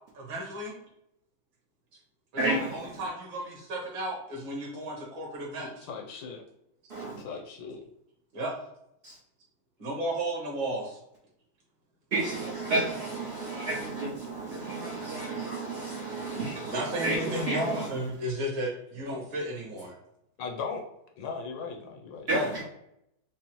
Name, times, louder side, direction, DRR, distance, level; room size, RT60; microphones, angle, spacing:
voice 1, 0.1-0.8 2.3-5.9 8.3-8.5 9.8-11.0 16.7-19.9 22.3-22.5, right 1 dB, 65° right, -2 dB, 1.8 m, -33 dB
voice 2, 2.4-2.9 6.9-7.2 9.0-9.1 12.1-17.9 22.3-22.6, right 2 dB, 85° right, -6 dB, 0.5 m, -31 dB
voice 3, 5.9-6.4 7.2-7.8 20.4-20.8 21.2-22.7, left 5 dB, 75° left, 2 dB, 1.3 m, -38 dB
5.4 x 2.0 x 3.0 m, 0.78 s
omnidirectional pair, 2.3 m